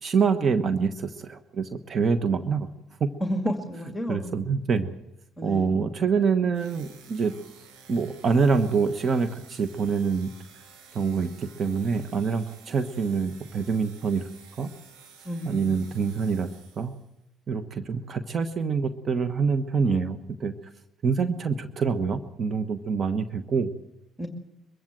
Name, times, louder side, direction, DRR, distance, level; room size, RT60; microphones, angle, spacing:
voice 1, 0.0-2.7 3.0-3.1 4.1-4.9 5.4-7.3 7.9-10.3 10.9-14.3 14.6-14.7 15.5-16.5 16.8-16.9 17.5-20.5 21.0-23.7, right 5 dB, 45° right, 9 dB, 1.2 m, -25 dB
voice 2, 3.2-4.3 5.4-5.7 15.2-15.9 24.2-24.3, equal, 5° left, 4 dB, 2.2 m, -31 dB
sound 1, 6.5-17.1, right 5 dB, 85° right, 6.4 m, -52 dB
23.0 x 15.0 x 7.7 m, 0.94 s
supercardioid pair, 80°, 0 cm